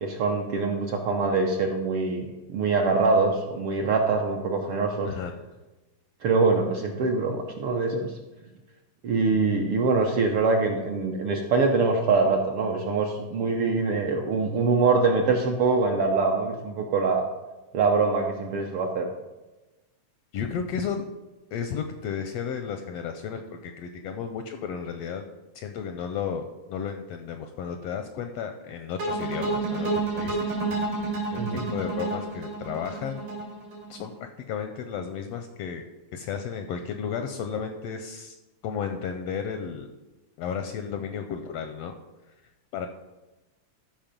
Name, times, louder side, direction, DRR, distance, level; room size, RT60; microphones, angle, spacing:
voice 1, 0.0-5.1 6.2-8.1 9.0-17.2 17.7-19.1 31.4-31.7, right 4 dB, 70° right, 2 dB, 1.4 m, -24 dB
voice 2, 5.0-5.3 20.3-21.0 21.5-25.3 25.5-30.5 31.3-33.2 33.9-35.8 36.1-38.3 38.6-39.9 40.4-41.9 42.7-42.9, left 7 dB, 80° left, 6 dB, 1.5 m, -33 dB
sound 1, 29.0-34.1, right 3 dB, 90° right, 4.0 m, -29 dB
13.0 x 5.3 x 5.2 m, 1.1 s
omnidirectional pair, 3.4 m